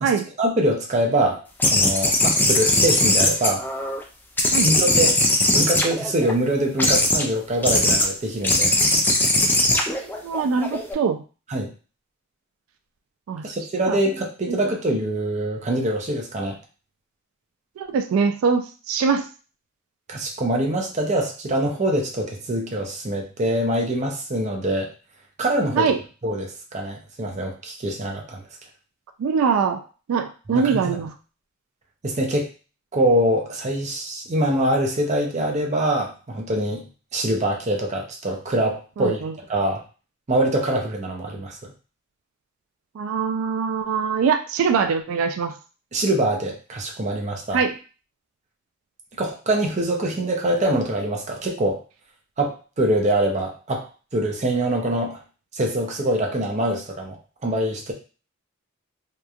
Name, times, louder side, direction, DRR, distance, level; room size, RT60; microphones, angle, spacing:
voice 1, 0.4-1.4 1.7-3.6 4.6-5.2 5.5-8.8 11.5-11.7 13.4-16.6 20.1-24.9 25.4-25.9 26.2-28.4 30.5-30.9 32.0-32.5 32.9-36.8 37.1-39.2 39.5-39.8 40.3-41.7 45.9-47.6 49.2-51.8 52.4-53.8 54.1-55.2 55.5-57.9, right 1 dB, 35° right, 0 dB, 0.6 m, -24 dB
sound 1, 1.6-4.0 4.4-6.3 6.8-7.2 7.6-8.1 8.4-10.9, left 1 dB, 10° left, 0.3 m, -20 dB
voice 2, 9.7-11.2 13.3-13.5 13.9-14.0 14.5-14.6 17.8-19.3 25.7-26.0 29.2-29.8 30.1-31.1 39.0-39.3 42.9-45.5 47.5-47.8, right 5 dB, 90° right, 7 dB, 0.3 m, -23 dB
2.9 x 2.2 x 2.3 m, 0.35 s
head